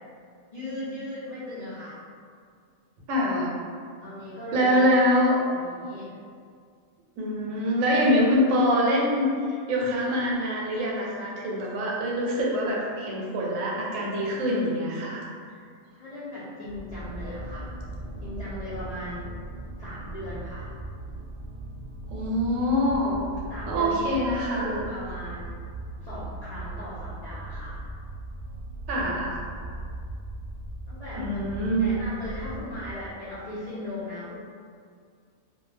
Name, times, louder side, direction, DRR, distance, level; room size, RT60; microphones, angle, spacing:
voice 1, 0.5-2.0 4.0-4.8 5.5-6.2 16.0-17.7 18.2-19.3 19.8-20.7 23.5-25.6 26.0-27.8 30.9-31.3 31.8-34.3, left 1 dB, 80° left, -11 dB, 0.3 m, -37 dB
voice 2, 3.1-3.5 4.5-5.4 7.2-15.3 22.1-23.2 23.7-24.9 28.9-29.4 31.2-32.0, equal, 80° right, -3 dB, 1.0 m, -24 dB
sound 1, 16.6-32.9, right 2 dB, 50° right, 0.3 m, -38 dB
2.3 x 2.2 x 3.1 m, 2.2 s
omnidirectional pair, 1.4 m